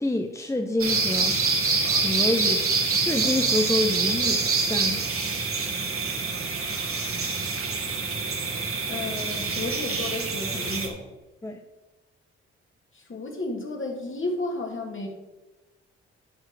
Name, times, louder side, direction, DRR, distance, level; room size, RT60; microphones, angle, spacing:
voice 1, 0.0-1.4 1.8-5.0 11.4-11.6, left 1 dB, 10° left, 4 dB, 0.9 m, -28 dB
sound 1, 0.8-10.9, right 4 dB, 45° right, 1.9 m, -26 dB
voice 2, 8.9-11.0 12.9-15.1, left 2 dB, 40° left, 1 dB, 2.7 m, -32 dB
12.0 x 4.8 x 4.9 m, 1.1 s
hypercardioid pair, 45°, 30 cm